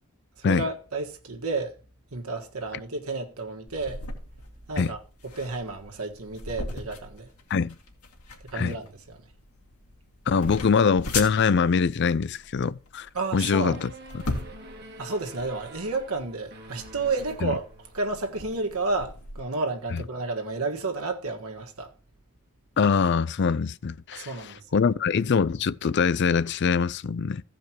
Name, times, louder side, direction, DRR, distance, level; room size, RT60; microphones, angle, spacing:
voice 1, 0.4-1.7 2.1-4.0 4.7-5.0 5.4-7.3 8.5-9.2 13.1-13.9 15.0-17.6 17.9-21.9 24.1-24.6, right 3 dB, 80° right, 1.6 m, -31 dB
sound 1, 3.7-19.4, left 2 dB, 90° left, 2.3 m, -39 dB
voice 2, 10.3-14.2 17.4-17.5 19.9-20.0 22.8-27.4, left 5 dB, 50° left, 0.4 m, -24 dB
sound 2, 13.6-18.3, right 1 dB, 50° right, 1.8 m, -46 dB
15.0 x 5.1 x 4.5 m
head